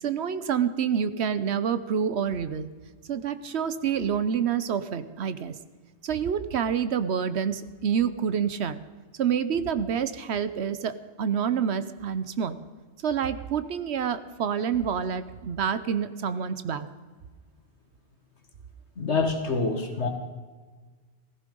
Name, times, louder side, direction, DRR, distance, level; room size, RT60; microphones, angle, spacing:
voice 1, 0.0-2.7 3.1-5.5 6.0-8.8 9.2-12.6 13.0-16.9, right 7 dB, 75° right, 13 dB, 1.1 m, -27 dB
voice 2, 19.0-20.1, left 3 dB, 75° left, 5 dB, 2.1 m, -26 dB
16.0 x 15.0 x 5.4 m, 1.4 s
omnidirectional pair, 1.1 m